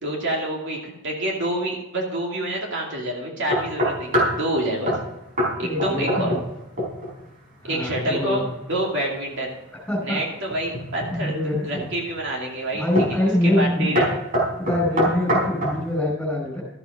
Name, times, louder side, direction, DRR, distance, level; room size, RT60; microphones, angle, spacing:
voice 1, 0.0-5.0 5.6-6.3 7.6-8.4 8.7-9.5 10.0-11.3 11.6-12.8 13.1-13.2 13.4-14.1, right 1 dB, 55° right, -1 dB, 2.5 m, -27 dB
sound 1, 3.5-4.4 4.9-5.1 5.4-5.5 5.8-6.5 6.8-7.1 10.5-11.2 11.8-12.2 13.0-13.2 13.5-13.7 14.0-15.8, equal, 40° right, 4.6 m, -23 dB
voice 2, 5.6-6.4 7.6-8.5 9.9-10.2 11.1-11.9 12.7-14.0 14.6-16.6, left 1 dB, 5° left, -2 dB, 4.3 m, -24 dB
13.5 x 8.1 x 5.4 m, 0.97 s
head